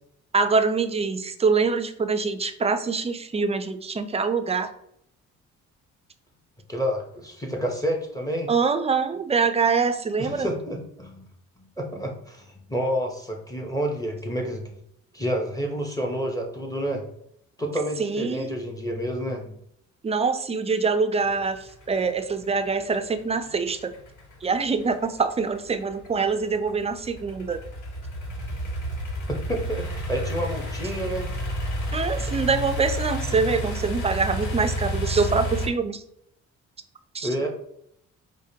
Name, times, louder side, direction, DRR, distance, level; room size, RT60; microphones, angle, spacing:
voice 1, 0.3-4.7 8.5-10.5 18.0-18.6 20.0-23.9 24.4-27.6 31.9-36.0 37.1-37.3, right 4 dB, 20° right, 9 dB, 0.3 m, -24 dB
voice 2, 6.7-8.5 10.2-11.3 11.8-14.8 15.1-17.0 17.6-19.6 29.3-31.3 37.2-37.5, equal, 10° left, 1 dB, 0.8 m, -29 dB
sound 1, 21.2-35.7, equal, 75° left, 1.3 m, -31 dB
4.8 x 2.2 x 2.7 m, 0.73 s
cardioid pair, 90°, 30 cm